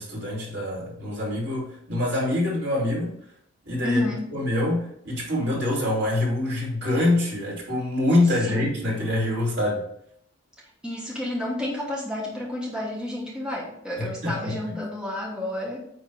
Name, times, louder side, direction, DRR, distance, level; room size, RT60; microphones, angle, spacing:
voice 1, 0.0-3.1 3.7-4.0 4.3-9.9 14.0-14.8, left 1 dB, 60° right, -3 dB, 2.8 m, -25 dB
voice 2, 3.8-4.3 8.4-8.6 10.8-15.9, left 1 dB, 5° right, -4 dB, 1.3 m, -30 dB
9.1 x 3.2 x 4.7 m, 0.70 s
head